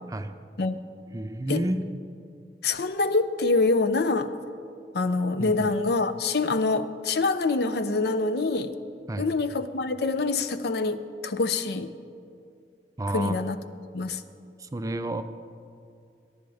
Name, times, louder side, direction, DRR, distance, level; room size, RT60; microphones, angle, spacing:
voice 1, 1.1-1.9 5.4-5.7 9.1-9.3 13.0-13.5 14.6-15.2, right 1 dB, 20° right, 10 dB, 0.4 m, -30 dB
voice 2, 2.6-4.3 4.9-8.7 9.2-11.9 13.1-13.6 13.9-14.2, left 3 dB, 65° left, 11 dB, 0.6 m, -25 dB
22.5 x 10.5 x 3.5 m, 2.4 s
head